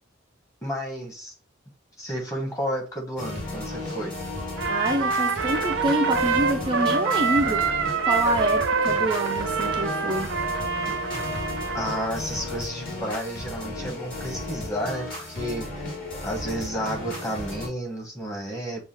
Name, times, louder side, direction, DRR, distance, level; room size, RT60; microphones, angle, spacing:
voice 1, 0.6-1.3 2.0-4.2 11.7-15.7 16.2-18.8, equal, 15° left, 1.2 m, -31 dB
sound 1, 3.2-17.7, left 1 dB, 50° left, 2.4 m, -34 dB
Trumpet, 4.6-12.1, right 5 dB, 65° right, 0.6 m, -26 dB
voice 2, 4.7-7.7 8.0-10.4, right 1 dB, 25° right, 0.4 m, -26 dB
7.1 x 2.4 x 2.8 m
head